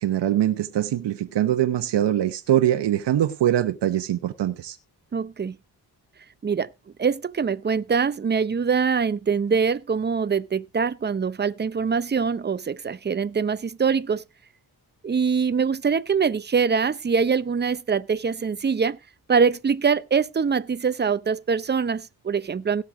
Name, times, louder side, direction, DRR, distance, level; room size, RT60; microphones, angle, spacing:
voice 1, 0.0-4.8, right 11 dB, 80° right, 0.9 m, -23 dB
voice 2, 5.1-5.6 6.4-6.7 7.0-14.2 15.0-19.0 19.3-22.8, right 6 dB, 25° right, 0.6 m, -23 dB
17.5 x 6.5 x 3.6 m
cardioid pair, 85°, 41 cm